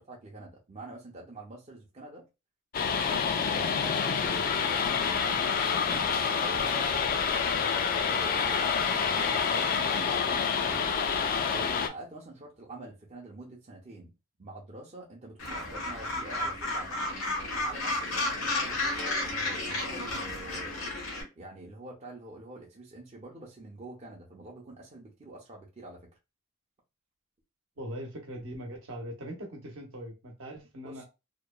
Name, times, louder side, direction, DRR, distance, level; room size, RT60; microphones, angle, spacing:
voice 1, 0.0-2.3 2.8-6.9 7.3-10.9 11.5-14.1 14.4-17.1 17.5-20.9 21.4-26.1 30.8-31.0, right 2 dB, 30° right, 0.5 m, -46 dB
sound 1, 2.7-11.9, left 6 dB, 45° left, 0.3 m, -27 dB
Gull seagull, 15.4-21.2, left 2 dB, 85° left, 1.0 m, -32 dB
voice 2, 27.8-31.0, equal, 70° right, 0.8 m, -41 dB
2.8 x 2.1 x 2.2 m
head